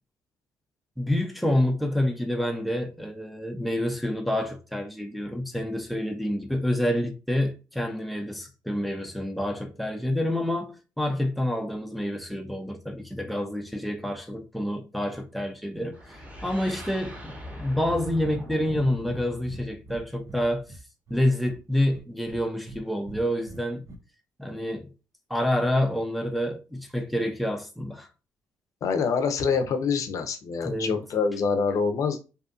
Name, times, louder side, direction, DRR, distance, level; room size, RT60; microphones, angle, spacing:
voice 1, 1.0-16.0 16.4-20.6 21.1-23.8 24.4-24.9 25.3-28.1 30.6-31.0, left 1 dB, ahead, 0.5 m, -28 dB
sound 1, 15.9-20.8, left 1 dB, 20° right, 0.9 m, -42 dB
Breathing, 17.8-18.0 18.2-18.4 18.7-18.8 19.1-20.4 20.7-21.6 21.9-22.8 23.1-24.0, right 1 dB, 50° right, 0.5 m, -43 dB
voice 2, 28.8-32.2, left 5 dB, 60° left, 0.5 m, -26 dB
2.6 x 2.4 x 2.4 m
cardioid pair, 100°, 6 cm